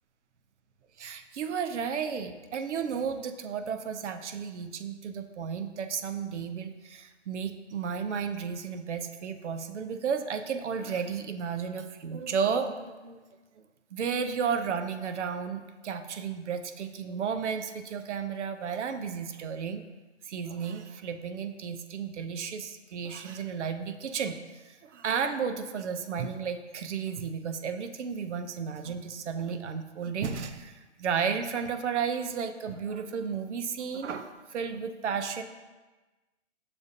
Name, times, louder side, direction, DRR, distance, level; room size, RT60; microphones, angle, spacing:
voice 1, 1.0-13.2 13.6-13.7 13.9-19.8 20.2-35.4, right 6 dB, 85° right, 9 dB, 0.5 m, -33 dB
6.7 x 2.5 x 2.6 m, 1.2 s
hypercardioid pair, 135°, 34 cm